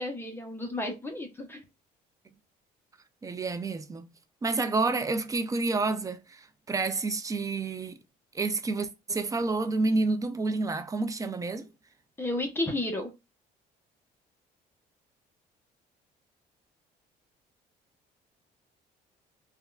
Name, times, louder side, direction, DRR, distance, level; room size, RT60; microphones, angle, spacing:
voice 1, 0.0-1.6 12.2-13.1, left 1 dB, 15° left, 0.7 m, -32 dB
voice 2, 3.2-4.1 4.4-8.0 8.3-11.7, right 3 dB, 20° right, 0.3 m, -29 dB
3.5 x 2.3 x 2.3 m
cardioid pair, 110°, 17 cm